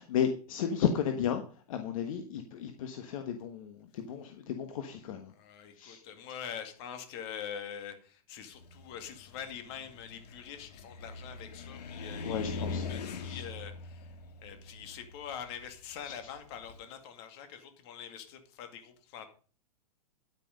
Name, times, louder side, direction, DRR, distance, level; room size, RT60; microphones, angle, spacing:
voice 1, 0.0-1.4 1.7-5.3 5.8-6.0 12.2-12.9 13.2-13.4 16.1-16.2, left 8 dB, 55° left, 7 dB, 1.4 m, -33 dB
voice 2, 5.3-14.1 14.4-19.3, left 8 dB, 40° left, 8 dB, 2.2 m, -44 dB
Car, 8.6-16.8, left 4 dB, 85° left, 1.9 m, -42 dB
10.5 x 9.4 x 5.2 m, 0.40 s
supercardioid pair, 155°, 20 cm